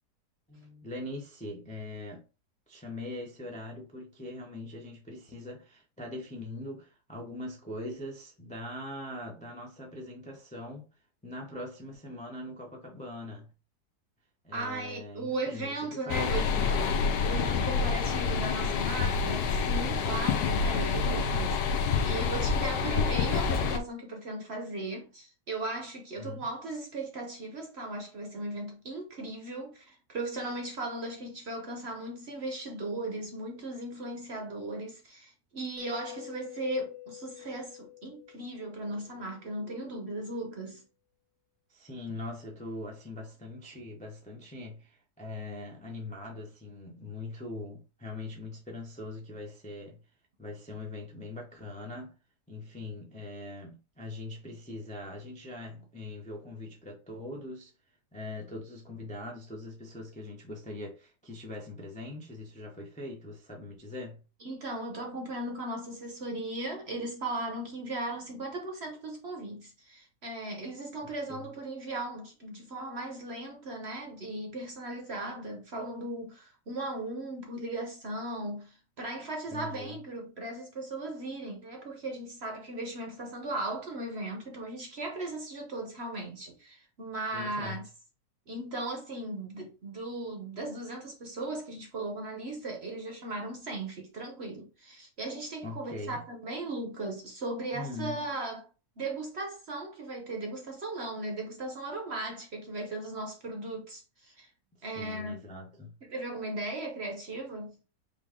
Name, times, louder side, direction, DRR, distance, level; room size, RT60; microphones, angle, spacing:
voice 1, 0.5-2.2 2.7-10.9 11.2-13.5 14.4-17.0 21.1-21.5 26.2-26.5 41.7-50.0 50.4-52.1 52.5-57.7 58.1-64.2 71.3-71.4 79.5-80.0 87.3-87.8 95.6-96.2 97.7-98.2 104.9-106.0, left 2 dB, 10° left, 0.5 m, -42 dB
voice 2, 14.5-16.5 17.2-21.6 22.0-40.8 64.4-87.8 88.5-98.7 99.0-104.5 104.8-105.4 106.1-107.8, right 2 dB, 45° right, 1.0 m, -37 dB
sound 1, 16.1-23.8, left 5 dB, 70° left, 1.2 m, -27 dB
Mallet percussion, 35.8-39.5, left 13 dB, 70° right, 1.1 m, -47 dB
5.2 x 2.5 x 3.5 m
omnidirectional pair, 1.8 m